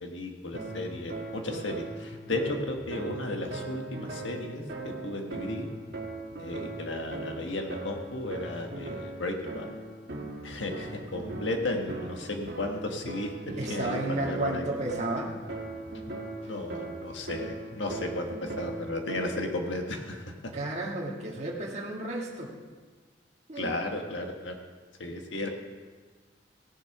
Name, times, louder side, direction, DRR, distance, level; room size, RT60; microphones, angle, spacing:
voice 1, 0.0-5.7 6.4-9.7 10.4-14.6 16.4-20.3 23.5-24.5 25.0-25.5, left 2 dB, 80° left, 3 dB, 1.5 m, -34 dB
sound 1, 0.5-19.6, right 2 dB, 55° right, 1.6 m, -39 dB
voice 2, 13.6-15.3 20.5-22.5 23.5-23.7, right 2 dB, 35° right, -2 dB, 1.7 m, -32 dB
16.0 x 7.3 x 5.9 m, 1.5 s
head